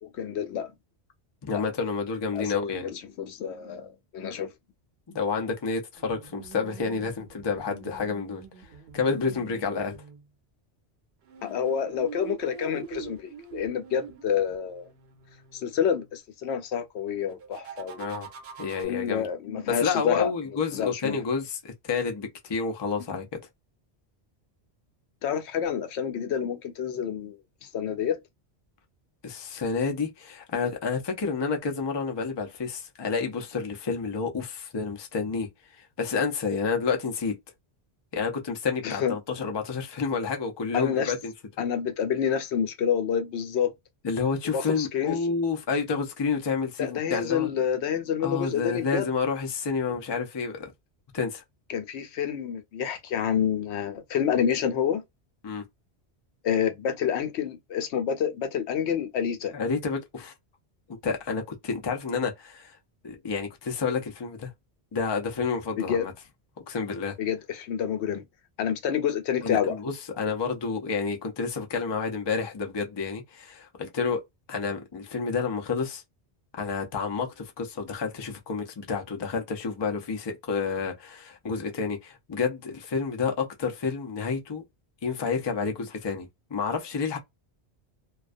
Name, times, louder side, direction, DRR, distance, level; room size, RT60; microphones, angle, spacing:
voice 1, 0.2-0.7 2.3-4.5 11.4-14.9 15.5-18.1 18.8-20.3 20.7-21.2 25.2-28.2 38.8-39.1 40.7-41.1 41.6-43.7 44.5-45.2 46.8-49.0 51.7-55.0 56.4-59.5 65.9-66.1 67.2-68.2 68.6-69.8, left 8 dB, 85° left, 0.9 m, -28 dB
voice 2, 1.4-2.9 5.1-8.4 8.9-10.0 18.0-18.3 18.6-19.3 19.7-23.4 29.2-37.3 38.1-41.3 44.0-47.5 48.2-50.7 51.1-51.4 55.4-55.6 59.5-60.3 61.0-62.8 63.0-64.5 64.9-66.1 66.7-67.2 69.4-74.2 74.5-76.0 76.6-84.6 85.0-87.2, left 5 dB, 35° left, 0.5 m, -29 dB
sound 1, 5.9-10.2 11.3-16.1 17.3-18.9, right 7 dB, 70° right, 0.9 m, -45 dB
2.3 x 2.2 x 2.5 m
omnidirectional pair, 1.1 m